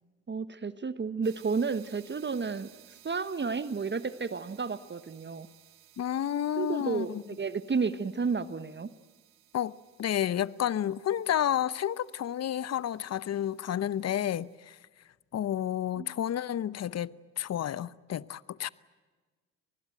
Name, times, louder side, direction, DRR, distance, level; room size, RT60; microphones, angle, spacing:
voice 1, 0.3-2.7 3.0-5.5 6.6-8.9 16.0-16.1, right 5 dB, 30° right, 1.2 m, -32 dB
sound 1, 1.2-14.6, right 13 dB, 70° right, 2.4 m, -60 dB
voice 2, 6.0-7.2 9.5-9.7 10.0-14.8 15.3-18.7, left 10 dB, 45° left, 0.8 m, -31 dB
25.5 x 20.0 x 9.2 m
hypercardioid pair, 55°, 36 cm